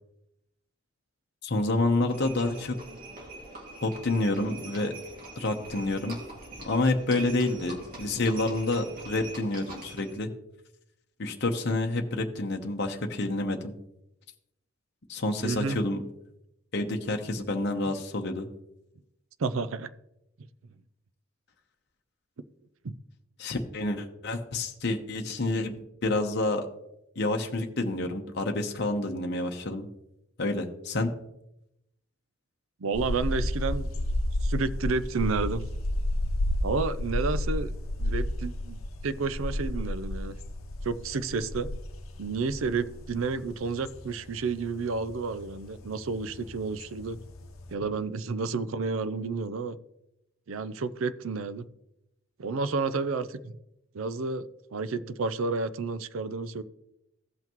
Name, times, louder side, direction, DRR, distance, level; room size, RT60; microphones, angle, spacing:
voice 1, 1.4-2.8 3.8-4.9 5.4-6.2 6.6-10.3 11.2-13.7 15.1-16.0 16.7-18.5 23.4-26.7 27.2-29.9 30.4-31.1, left 2 dB, 55° left, 3 dB, 0.8 m, -28 dB
Livestock farm animals working animals, 2.1-10.2, right 2 dB, 45° right, 2.3 m, -44 dB
voice 2, 15.4-15.8 19.4-19.9 22.8-22.9 32.8-33.9 34.4-35.6 36.6-37.7 38.0-40.3 40.8-41.7 42.2-47.2 47.7-49.8 50.5-51.7 52.4-53.6 53.9-54.4 54.7-56.6, right 4 dB, 80° right, 14 dB, 0.5 m, -31 dB
sound 1, 32.9-47.7, left 1 dB, 85° left, 0.8 m, -32 dB
16.0 x 5.7 x 3.0 m, 0.86 s
head